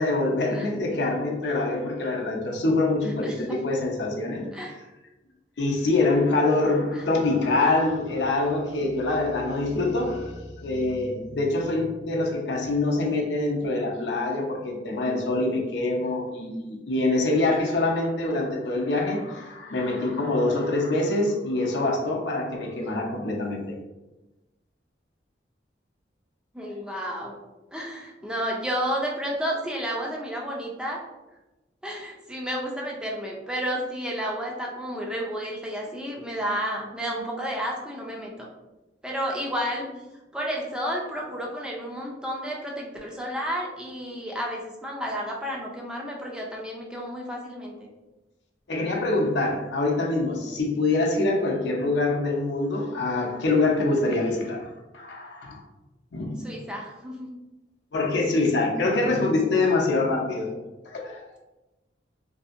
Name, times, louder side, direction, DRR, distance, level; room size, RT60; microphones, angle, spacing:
voice 1, 0.0-4.5 5.6-23.8 48.7-55.6 56.1-56.5 57.9-60.6 60.8-61.4, left 2 dB, 70° left, 1 dB, 0.5 m, -25 dB
voice 2, 3.2-3.6 4.5-4.7 26.5-27.3 27.7-31.0 31.8-38.5 39.0-39.9 40.3-47.9 56.4-57.3 58.2-58.4, equal, 5° right, -2 dB, 0.4 m, -31 dB
2.6 x 2.5 x 2.4 m, 1.0 s
head